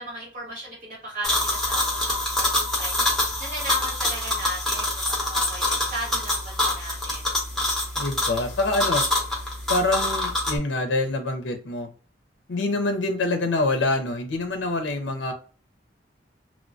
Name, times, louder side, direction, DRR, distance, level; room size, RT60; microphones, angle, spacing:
voice 1, 0.0-7.3, right 1 dB, 40° right, -4 dB, 1.5 m, -36 dB
sound 1, 1.2-10.6, left 1 dB, ahead, 0.8 m, -25 dB
voice 2, 8.0-9.0 9.7-11.9 12.5-15.3, left 2 dB, 75° left, 6 dB, 0.5 m, -25 dB
3.0 x 2.1 x 2.5 m, 0.39 s
head